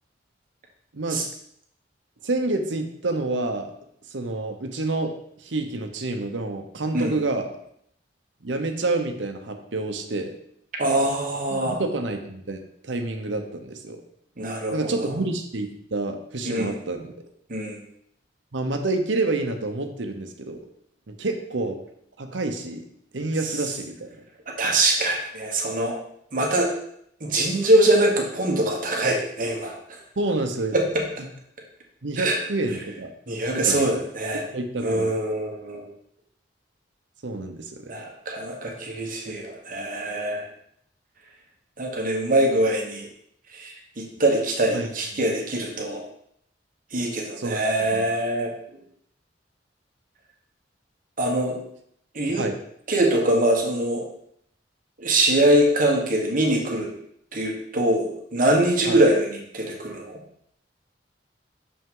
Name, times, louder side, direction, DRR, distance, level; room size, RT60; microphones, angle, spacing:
voice 1, 2.2-3.7 4.1-5.1 5.4-7.5 8.4-10.3 11.5-14.0 14.7-17.1 18.5-20.6 21.1-21.8 22.2-22.8 23.1-24.1 30.2-30.7 32.0-33.1 33.5-34.0 34.5-35.1 37.2-38.0 44.7-44.9 45.2-45.3 47.4-47.6 47.9-48.1 52.4-52.6 58.9-59.0, right 2 dB, 85° right, 5 dB, 0.9 m, -28 dB
voice 2, 10.8-11.8 14.4-15.1 16.4-16.7 17.5-17.8 24.6-25.9 26.3-26.7 27.2-29.7 30.7-31.0 32.2-32.4 33.3-34.4 34.8-35.8 37.9-40.4 41.8-43.1 43.5-46.0 46.9-48.5 51.2-51.6 52.1-52.5 52.9-54.0 55.0-56.9 57.3-60.2, right 1 dB, 50° right, 1 dB, 1.3 m, -23 dB
6.4 x 5.6 x 3.8 m, 0.70 s
head